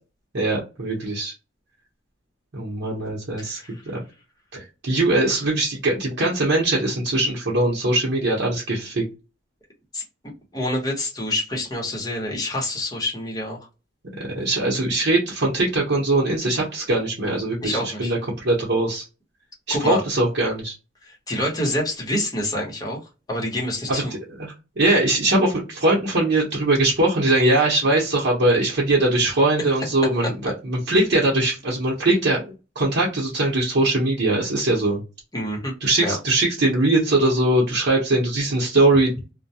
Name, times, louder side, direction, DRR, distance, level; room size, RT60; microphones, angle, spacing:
voice 1, 0.3-1.3 2.5-4.0 4.5-9.0 14.2-19.0 19.7-20.7 23.9-24.0 24.4-24.5 24.8-35.0 35.8-39.3, right 2 dB, 65° right, -4 dB, 0.8 m, -21 dB
voice 2, 3.4-3.7 5.3-5.4 9.9-10.0 10.5-13.6 17.6-18.1 19.7-20.0 21.0-23.0 23.3-24.1 35.3-35.7 36.0-36.2, left 1 dB, 20° left, -2 dB, 1.0 m, -27 dB
2.2 x 2.1 x 2.7 m, 0.29 s
head